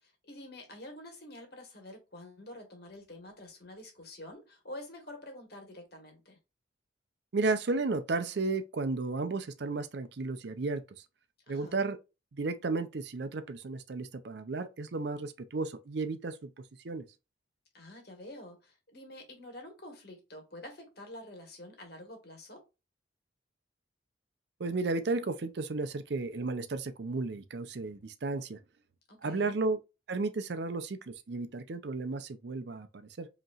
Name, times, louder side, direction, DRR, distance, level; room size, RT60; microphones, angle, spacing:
voice 1, 0.0-6.4 11.5-11.8 17.7-22.6 29.1-29.6, left 1 dB, 55° left, 1.5 m, -48 dB
voice 2, 7.3-10.8 11.5-12.0 12.3-16.5 16.8-17.0 24.6-28.6 29.2-29.8 30.1-33.3, right 3 dB, 60° right, 0.5 m, -33 dB
5.1 x 2.9 x 2.4 m
head